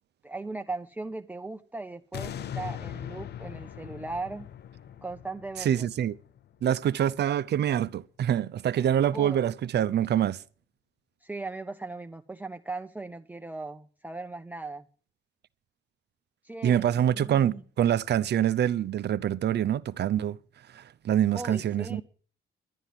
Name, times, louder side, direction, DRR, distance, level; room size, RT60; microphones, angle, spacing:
voice 1, 0.2-4.5 5.0-5.9 9.1-9.4 11.2-14.8 16.4-17.6 21.3-22.0, right 3 dB, 10° right, 0.7 m, -38 dB
sound 1, 2.1-7.2 7.7-7.8, left 10 dB, 55° left, 0.6 m, -41 dB
voice 2, 5.6-6.2 6.6-10.4 16.6-20.4 20.7-22.0, right 10 dB, 60° right, 0.6 m, -25 dB
11.5 x 9.8 x 7.4 m
cardioid pair, 90°, 20 cm